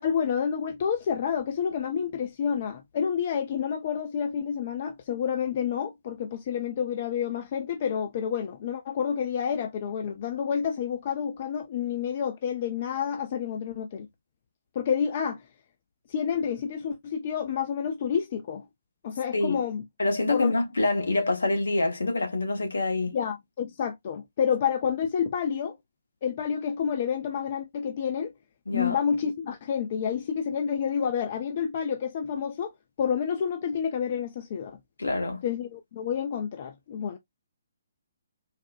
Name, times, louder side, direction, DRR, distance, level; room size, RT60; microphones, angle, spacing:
voice 1, 0.0-14.1 14.7-15.4 16.1-18.7 19.0-19.8 20.3-20.5 23.1-25.8 26.2-28.3 28.7-32.7 33.0-34.8 35.4-37.2, left 7 dB, 40° left, 0.5 m, -29 dB
voice 2, 20.0-23.2 28.7-29.0 35.0-35.4, left 2 dB, 70° left, 1.0 m, -26 dB
4.1 x 2.2 x 2.5 m
figure-of-eight pair, 135°, 0 cm